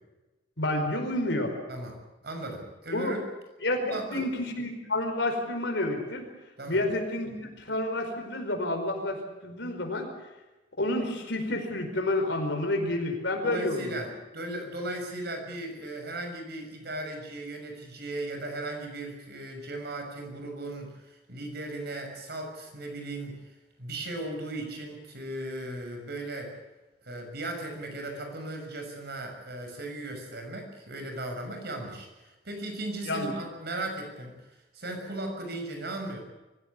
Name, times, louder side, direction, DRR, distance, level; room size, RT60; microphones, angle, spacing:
voice 1, 0.6-1.5 2.9-3.2 3.6-3.8 4.1-6.3 6.7-10.1 10.8-14.1 33.1-33.3, left 1 dB, 70° left, 4 dB, 5.0 m, -29 dB
voice 2, 2.2-3.2 3.8-4.3 6.6-6.8 13.4-23.5 23.8-26.5 27.0-36.2, right 1 dB, 60° right, 4 dB, 6.3 m, -37 dB
24.5 x 16.0 x 8.5 m, 1.1 s
head